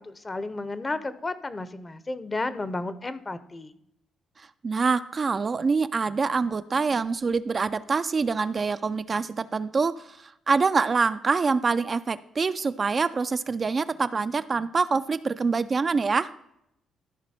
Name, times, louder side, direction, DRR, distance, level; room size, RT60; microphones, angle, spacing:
voice 1, 0.0-3.7, left 2 dB, 25° left, 13 dB, 0.7 m, -32 dB
voice 2, 4.4-16.3, right 4 dB, 35° right, 11 dB, 0.3 m, -25 dB
13.5 x 5.2 x 4.2 m, 0.80 s
cardioid pair, 90°, 0 cm